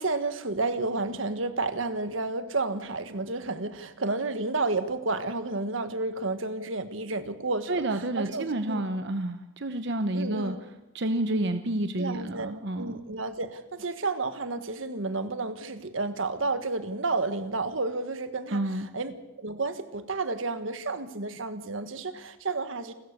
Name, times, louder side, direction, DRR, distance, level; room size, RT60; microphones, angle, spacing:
voice 1, 0.0-8.8 10.1-10.6 12.0-22.9, right 3 dB, 85° right, 10 dB, 1.6 m, -31 dB
voice 2, 7.7-10.5 10.9-13.1 18.5-18.9, right 1 dB, 60° right, 8 dB, 1.0 m, -29 dB
29.0 x 14.0 x 6.8 m, 0.98 s
head